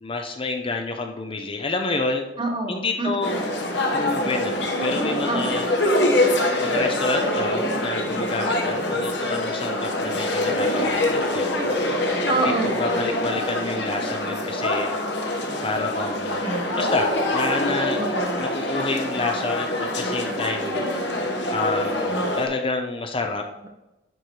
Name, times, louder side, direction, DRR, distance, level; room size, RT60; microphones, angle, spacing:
voice 1, 0.0-2.3 2.7-3.3 3.9-5.7 6.6-11.7 12.6-14.9 15.6-16.4 16.8-18.0 18.4-20.8 21.5-23.7, left 3 dB, 30° left, 4 dB, 0.7 m, -29 dB
voice 2, 2.4-3.4 5.3-5.8 12.3-12.8 16.4-16.7 18.0-18.4, right 2 dB, 25° right, 2 dB, 1.3 m, -27 dB
sound 1, 3.2-22.4, left 1 dB, 65° left, 1.4 m, -24 dB
10.5 x 4.8 x 4.6 m, 0.98 s
head